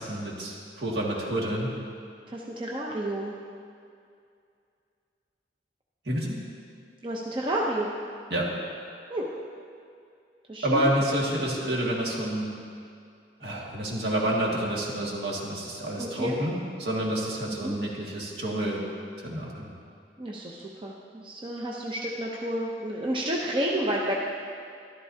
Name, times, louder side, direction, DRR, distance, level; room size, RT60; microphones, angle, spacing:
voice 1, 0.0-1.7 6.1-6.4 8.3-8.5 10.6-12.5 13.4-16.5 16.8-18.8 19.2-19.7, right 1 dB, 65° right, -3 dB, 2.0 m, -28 dB
voice 2, 2.3-3.4 7.0-7.9 9.1-9.3 10.5-10.8 16.0-16.4 17.4-17.7 20.2-24.1, right 1 dB, 30° right, -3 dB, 0.7 m, -30 dB
13.5 x 12.0 x 2.8 m, 2.4 s
head